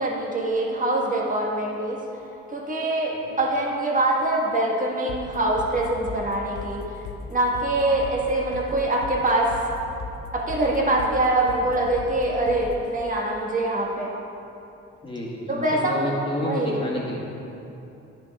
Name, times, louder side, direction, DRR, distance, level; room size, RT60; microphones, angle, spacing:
voice 1, 0.0-2.0 2.5-6.8 7.3-9.5 10.3-14.1 15.5-16.0 16.4-16.8, right 2 dB, 25° right, -2 dB, 1.5 m, -24 dB
sound 1, 5.1-12.9, left 4 dB, 75° left, 0.9 m, -38 dB
voice 2, 15.0-17.2, left 1 dB, 15° left, -5 dB, 1.8 m, -29 dB
10.5 x 6.0 x 3.5 m, 2.8 s
cardioid pair, 90°, 30 cm